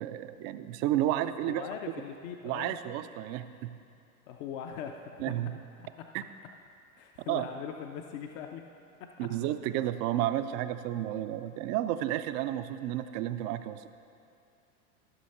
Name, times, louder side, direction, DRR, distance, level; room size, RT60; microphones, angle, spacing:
voice 1, 0.0-1.6 2.4-3.7 5.2-5.5 6.1-6.2 7.3-7.5 9.2-13.9, right 13 dB, 35° right, 11 dB, 0.4 m, -31 dB
voice 2, 1.5-2.8 4.3-5.3 5.8-6.1 7.0-8.7 9.0-9.3, left 8 dB, 45° left, 4 dB, 0.7 m, -41 dB
14.0 x 6.2 x 4.3 m, 2.5 s
hypercardioid pair, 95°, 45 cm